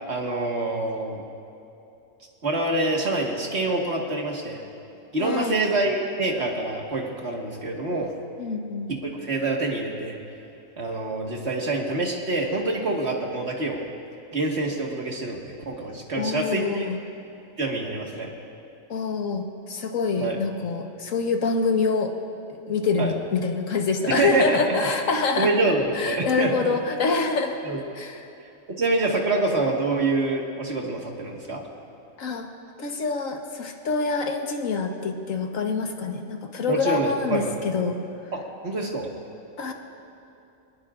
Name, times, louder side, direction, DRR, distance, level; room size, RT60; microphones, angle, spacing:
voice 1, 0.1-1.2 2.4-4.6 5.1-8.1 8.9-10.2 10.8-13.8 14.3-16.9 17.6-18.3 20.2-20.4 23.0-23.1 24.1-24.9 25.4-26.8 27.7-27.8 28.7-31.6 36.7-37.6 38.3-39.1, right 2 dB, 55° right, 0 dB, 2.0 m, -26 dB
voice 2, 5.2-5.6 8.4-8.9 16.1-17.0 18.9-19.4 19.7-22.1 22.7-25.5 25.9-27.6 28.0-28.1 32.2-32.5 32.8-38.0 39.6-39.7, left 4 dB, 85° left, 3 dB, 1.6 m, -26 dB
24.0 x 20.0 x 2.5 m, 2.8 s
omnidirectional pair, 1.3 m